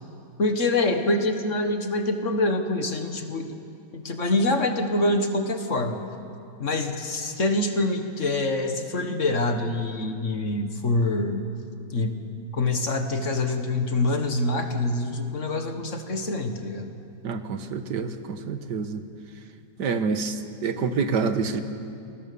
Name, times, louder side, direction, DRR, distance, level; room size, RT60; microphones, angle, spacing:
voice 1, 0.4-3.5 3.9-6.0 6.6-11.4 11.9-12.2 12.5-16.9, left 2 dB, 45° left, 6 dB, 1.8 m, -25 dB
voice 2, 17.2-18.1 18.5-19.0 19.8-20.3 20.6-21.6, right 5 dB, 90° right, 9 dB, 1.8 m, -26 dB
28.0 x 21.0 x 7.0 m, 2.6 s
omnidirectional pair, 1.8 m